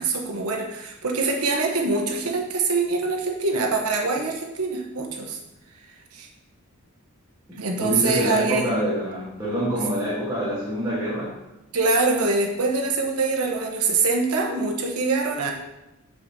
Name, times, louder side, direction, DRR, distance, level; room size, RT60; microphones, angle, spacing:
voice 1, 0.0-5.4 6.1-6.3 7.6-8.8 9.8-9.9 11.7-15.5, right 3 dB, 85° right, 2 dB, 1.0 m, -24 dB
voice 2, 7.5-11.4, equal, 15° right, -10 dB, 1.2 m, -26 dB
6.6 x 6.1 x 2.7 m, 0.96 s
head